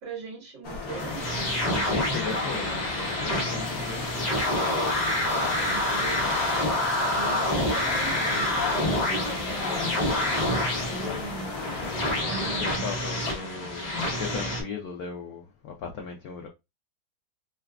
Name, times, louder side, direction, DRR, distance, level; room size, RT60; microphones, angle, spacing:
voice 1, 0.0-2.0 2.3-2.7 5.3-6.3 7.1-10.3 10.9-11.5 12.2-13.0 13.3-13.5, right 4 dB, 65° right, 2.0 m, -41 dB
sound 1, 0.6-12.2, left 4 dB, 50° left, 1.1 m, -35 dB
sound 2, 0.9-14.6, left 1 dB, 35° left, 0.7 m, -27 dB
voice 2, 1.7-4.6 11.1-11.3 12.3-16.5, left 6 dB, 90° left, 0.8 m, -37 dB
4.0 x 2.2 x 2.3 m
omnidirectional pair, 2.2 m